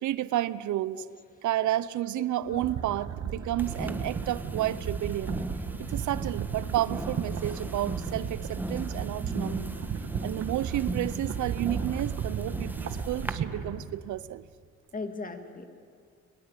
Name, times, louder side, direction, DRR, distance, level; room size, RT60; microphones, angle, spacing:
voice 1, 0.0-1.0 1.4-5.4 5.8-9.7 10.2-14.5, right 14 dB, 75° right, 18 dB, 0.7 m, -31 dB
sound 1, 2.4-14.0, right 7 dB, 55° right, 1.8 m, -35 dB
sound 2, 3.6-13.3, right 1 dB, 5° right, 1.4 m, -38 dB
voice 2, 14.9-15.7, left 3 dB, 25° left, 7 dB, 2.3 m, -38 dB
22.0 x 21.0 x 8.2 m, 2.2 s
cardioid pair, 90°, 30 cm